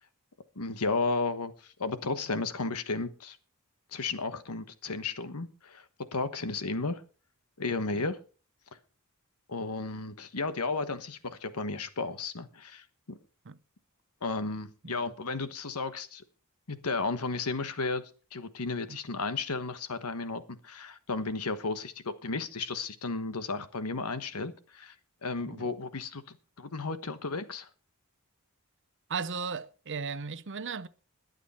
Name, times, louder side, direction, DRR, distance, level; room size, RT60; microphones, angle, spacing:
voice 1, 0.5-3.4 3.9-5.8 6.1-7.0 7.6-8.2 9.5-13.2 14.2-16.2 16.7-18.0 18.3-24.9 25.2-27.7, left 3 dB, 90° left, 1.3 m, -33 dB
voice 2, 29.1-30.9, right 5 dB, 55° right, 0.7 m, -36 dB
21.5 x 8.1 x 4.3 m
head